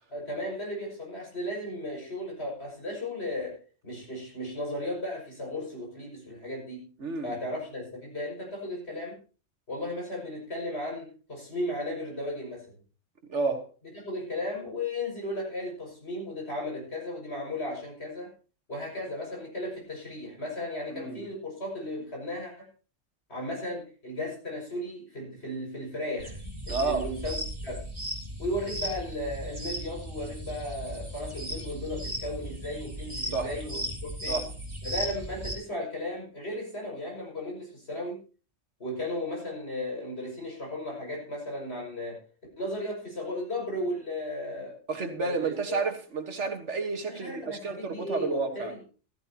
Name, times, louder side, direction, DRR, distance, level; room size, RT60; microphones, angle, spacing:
voice 1, 0.1-6.8 7.2-9.2 9.7-12.8 13.9-18.3 18.7-22.7 23.3-26.4 26.7-27.8 28.4-34.4 34.8-38.2 38.8-42.2 42.6-44.8 45.2-45.8 47.1-48.8, left 1 dB, 55° left, 6.6 m, -35 dB
voice 2, 7.0-7.4 13.3-13.7 20.9-21.3 26.7-27.1 33.3-33.5 34.3-34.5 44.9-48.7, right 4 dB, 65° right, 1.8 m, -31 dB
sound 1, 26.2-35.5, equal, 20° right, 3.8 m, -36 dB
15.5 x 14.0 x 2.9 m
omnidirectional pair, 1.3 m